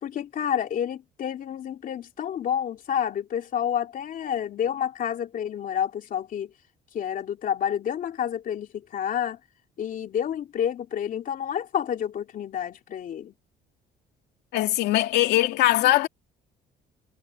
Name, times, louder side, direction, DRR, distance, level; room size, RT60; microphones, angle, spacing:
voice 1, 0.0-6.5 6.9-9.4 9.8-13.3, left 9 dB, 55° left, 2.9 m, -29 dB
voice 2, 14.5-16.1, left 16 dB, 85° left, 2.5 m, -21 dB
cardioid pair, 110°, 17 cm